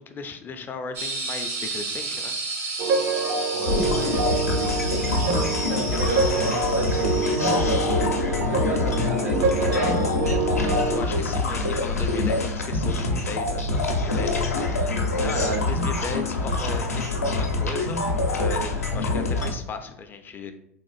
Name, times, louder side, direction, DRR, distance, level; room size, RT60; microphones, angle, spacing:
voice 1, 0.0-2.4 10.9-18.0 18.3-20.5, left 4 dB, 25° left, 8 dB, 0.3 m, -36 dB
sound 1, 0.9-7.7, right 2 dB, 65° right, 1.0 m, -32 dB
sound 2, 2.8-11.0, right 3 dB, 50° right, 0.4 m, -26 dB
voice 2, 3.5-10.6 15.2-15.7, right 2 dB, 85° right, 0 dB, 0.8 m, -33 dB
sound 3, 3.6-19.5, left 2 dB, 90° left, 0.4 m, -25 dB
3.6 x 2.4 x 2.3 m, 0.78 s
hypercardioid pair, 85°, 8 cm